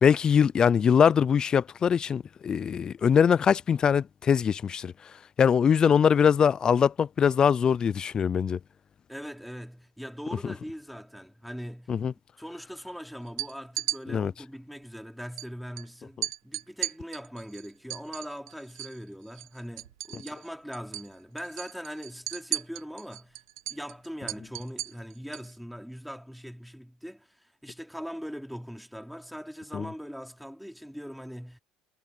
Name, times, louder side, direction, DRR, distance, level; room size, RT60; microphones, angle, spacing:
voice 1, 0.0-4.9 5.4-8.6 11.9-12.1 14.1-14.3 29.7-29.9, left 7 dB, 40° left, 0.5 m, -22 dB
voice 2, 9.1-11.9 12.4-23.4 23.7-31.6, equal, ahead, 3.5 m, -41 dB
sound 1, 13.3-14.0 15.4-15.5 15.8-15.9 16.2-19.0 19.3-20.5 20.7-21.1 21.4-25.5, right 14 dB, 90° right, 1.4 m, -35 dB
hypercardioid pair, 75°, 2 cm